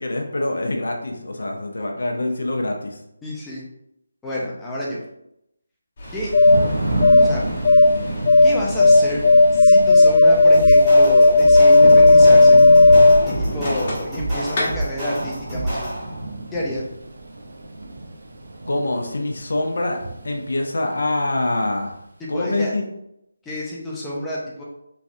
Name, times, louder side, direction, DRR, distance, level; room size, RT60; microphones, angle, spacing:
voice 1, 0.0-3.0 18.7-20.0 20.2-22.0 22.3-22.8, left 2 dB, 70° left, 2 dB, 0.5 m, -25 dB
voice 2, 3.2-3.6 4.2-5.0 6.1-6.3 7.1-7.5 8.4-9.2 9.5-12.6 13.4-16.0 16.5-16.8 22.2-22.8 23.5-24.6, left 1 dB, 5° left, -6 dB, 0.4 m, -29 dB
sound 1, 6.0-14.2 14.5-14.6, left 2 dB, 35° left, 0.9 m, -13 dB
Thunder / Rain, 6.0-21.8, right 2 dB, 60° right, 0.5 m, -30 dB
sound 2, 10.5-16.2, right 1 dB, 10° right, 0.8 m, -28 dB
3.1 x 2.5 x 2.6 m, 0.80 s
figure-of-eight pair, 170°, 0 cm